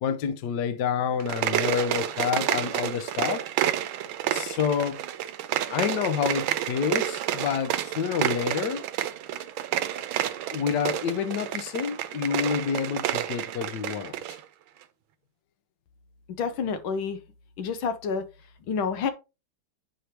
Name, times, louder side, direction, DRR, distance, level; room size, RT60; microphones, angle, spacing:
voice 1, 0.0-3.4 4.3-5.0 5.7-8.8 10.0-10.1 10.5-14.2, left 7 dB, 65° left, 1.3 m, -28 dB
sound 1, 1.1-14.4, right 12 dB, 80° right, 1.4 m, -30 dB
voice 2, 16.4-17.2 17.6-18.2 18.7-19.1, left 5 dB, 80° left, 1.6 m, -28 dB
8.0 x 4.9 x 2.9 m
omnidirectional pair, 2.3 m